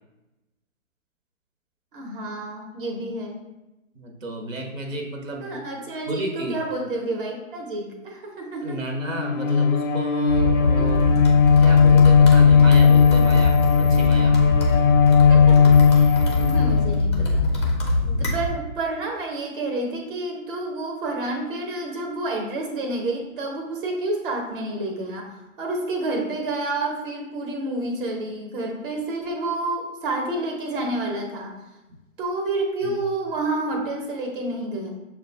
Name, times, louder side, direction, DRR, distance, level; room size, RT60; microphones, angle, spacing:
voice 1, 1.9-3.4 5.4-8.8 10.8-10.9 15.3-16.2 16.4-17.5 18.0-25.3 25.6-31.6 32.2-34.9, right 2 dB, 40° right, 1 dB, 0.9 m, -29 dB
voice 2, 3.9-5.6 6.1-6.6 8.6-11.1 11.6-14.4 32.8-33.0, right 1 dB, 75° right, 2 dB, 1.0 m, -32 dB
Bowed string instrument, 9.0-17.4, left 6 dB, 90° left, 0.6 m, -17 dB
sound 1, 10.3-18.5, left 2 dB, 20° left, 0.4 m, -23 dB
6.5 x 2.2 x 2.6 m, 1.0 s
figure-of-eight pair, 135°, 40 cm